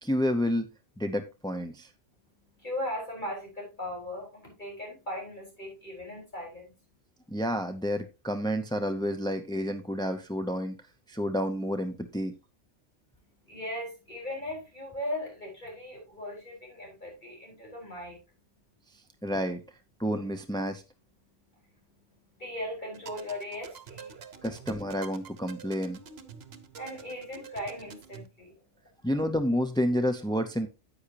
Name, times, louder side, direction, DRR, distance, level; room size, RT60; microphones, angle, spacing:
voice 1, 0.0-0.7 1.0-1.9 7.3-10.8 11.1-12.4 19.2-19.6 20.0-20.8 24.4-26.0 29.0-30.7, equal, 5° left, 0.3 m, -29 dB
voice 2, 2.1-6.9 13.2-19.3 21.2-24.5 26.4-29.1, left 1 dB, 40° left, 5.0 m, -39 dB
Someone Outside - Loop, 22.9-28.3, right 7 dB, 60° right, 1.1 m, -47 dB
9.9 x 8.5 x 2.9 m
omnidirectional pair, 1.2 m